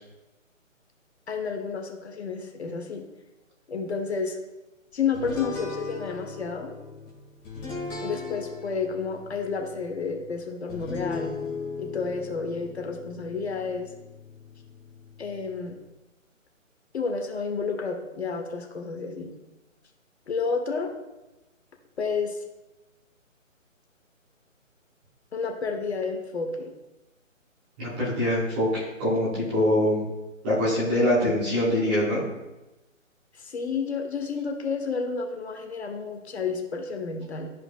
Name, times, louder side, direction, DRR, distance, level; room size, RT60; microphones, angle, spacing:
voice 1, 1.3-3.1 3.7-4.4 4.9-6.7 8.0-11.3 11.8-13.9 15.2-15.8 16.9-19.3 20.3-20.9 22.0-22.4 25.3-26.7 33.3-37.5, left 5 dB, 55° left, 3 dB, 1.1 m, -30 dB
sound 1, 5.1-15.8, left 4 dB, 15° left, 1.5 m, -38 dB
voice 2, 27.8-30.1 30.4-32.2, left 1 dB, 10° right, -9 dB, 0.7 m, -24 dB
12.5 x 4.9 x 2.3 m, 1.0 s
figure-of-eight pair, 155°, 40 cm